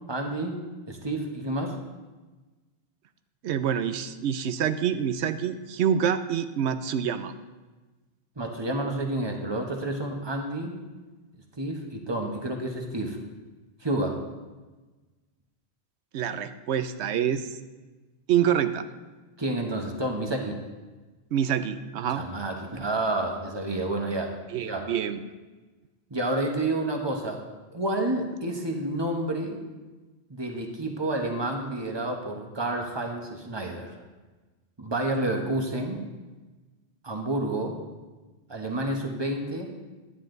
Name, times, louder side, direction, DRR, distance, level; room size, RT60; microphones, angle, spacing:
voice 1, 0.1-0.6 0.9-1.8 8.4-10.8 11.6-13.2 13.8-14.3 19.4-20.6 22.1-24.3 24.6-24.9 26.1-27.4 27.7-29.6 30.3-33.9 34.8-36.0 37.0-37.8 38.5-39.7, right 1 dB, 25° right, 2 dB, 1.3 m, -29 dB
voice 2, 3.4-7.3 16.1-17.5 18.3-18.9 21.3-22.2 24.5-25.2, right 9 dB, 80° right, 11 dB, 0.9 m, -26 dB
11.0 x 9.9 x 3.9 m, 1.2 s
omnidirectional pair, 1.1 m